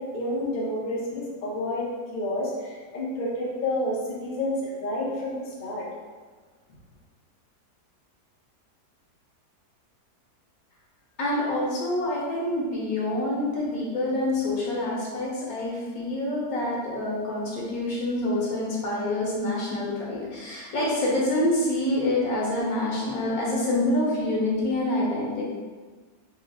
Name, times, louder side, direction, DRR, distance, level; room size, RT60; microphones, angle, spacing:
voice 1, 0.0-1.9 2.1-5.9, left 1 dB, 45° left, -5 dB, 0.6 m, -29 dB
voice 2, 11.2-25.4, left 1 dB, 65° left, -5 dB, 1.4 m, -26 dB
4.3 x 2.0 x 4.0 m, 1.4 s
omnidirectional pair, 1.8 m